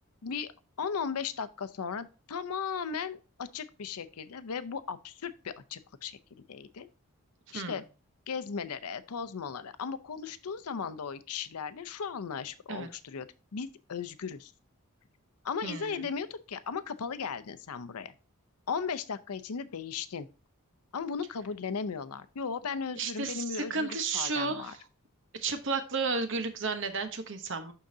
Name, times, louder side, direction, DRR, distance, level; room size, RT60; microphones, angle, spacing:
voice 1, 0.2-0.5 0.8-6.2 6.5-6.9 7.5-7.8 8.3-13.3 13.5-14.5 15.4-18.1 18.7-20.3 20.9-24.8, left 6 dB, 90° left, 12 dB, 0.6 m, -36 dB
voice 2, 15.6-16.1 23.0-24.8 25.3-27.7, right 4 dB, 55° right, 8 dB, 0.9 m, -33 dB
11.5 x 3.8 x 2.7 m, 0.33 s
head